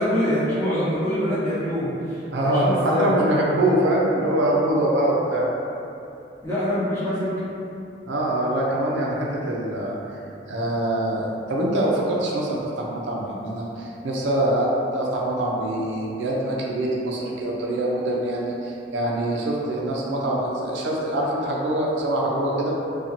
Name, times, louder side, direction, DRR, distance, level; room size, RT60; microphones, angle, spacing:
voice 1, 0.0-3.1 6.4-7.3, equal, 15° left, -14 dB, 0.9 m, -24 dB
voice 2, 2.3-5.5 8.1-10.2 10.5-22.7, right 1 dB, 85° right, -4 dB, 0.4 m, -24 dB
2.5 x 2.3 x 2.8 m, 2.7 s
head